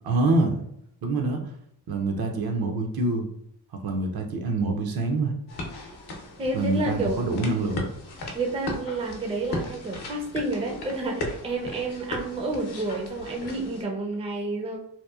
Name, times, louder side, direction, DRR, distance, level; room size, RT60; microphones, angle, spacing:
voice 1, 0.0-0.7 1.0-1.4 1.9-3.3 3.8-5.4 6.5-7.9, right 2 dB, 65° right, 3 dB, 0.6 m, -25 dB
sound 1, 5.5-13.8, left 2 dB, 70° left, 0.7 m, -37 dB
voice 2, 6.4-7.3 8.3-14.8, right 2 dB, 15° right, 1 dB, 0.4 m, -30 dB
2.8 x 2.0 x 2.2 m, 0.74 s
cardioid pair, 80°, 41 cm